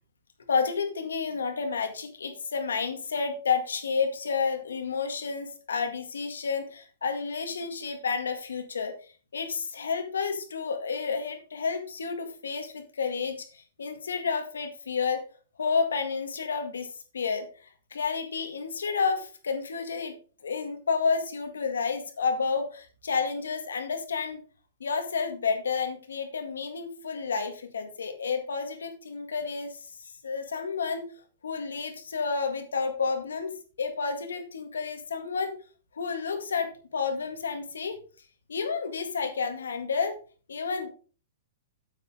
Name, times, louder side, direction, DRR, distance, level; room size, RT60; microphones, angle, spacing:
voice 1, 0.5-8.9 9.3-15.3 15.6-17.5 17.9-20.1 20.4-24.4 24.8-31.0 31.4-33.5 33.8-35.5 35.9-38.0 38.5-40.2 40.5-40.9, left 5 dB, 90° left, 7 dB, 1.8 m, -30 dB
8.5 x 8.3 x 3.6 m, 0.38 s
hypercardioid pair, 135°, 0 cm